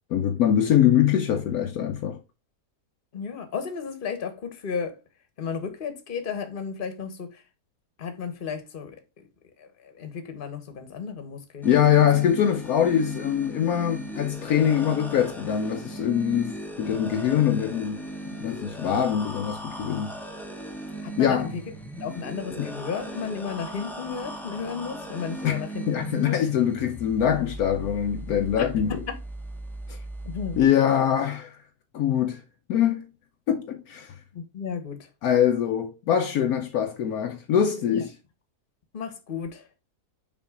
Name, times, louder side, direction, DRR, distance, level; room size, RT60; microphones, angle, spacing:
voice 1, 0.1-2.2 11.6-18.0 18.4-20.1 21.2-21.5 22.6-22.7 25.4-25.6 25.9-29.0 29.9-30.0 30.6-31.6 31.9-32.4 32.7-33.1 33.5-34.1 35.2-38.1, left 9 dB, 75° left, 1.1 m, -23 dB
voice 2, 3.1-4.9 5.4-7.4 8.0-9.0 9.6-12.1 21.0-21.6 22.0-26.4 28.6-29.1 30.2-30.6 34.3-35.0 37.9-38.0 38.9-39.6, left 6 dB, 35° left, 1.2 m, -34 dB
sound 1, 11.6-30.6, right 1 dB, ahead, 0.7 m, -38 dB
5.9 x 4.4 x 3.7 m
omnidirectional pair, 1.7 m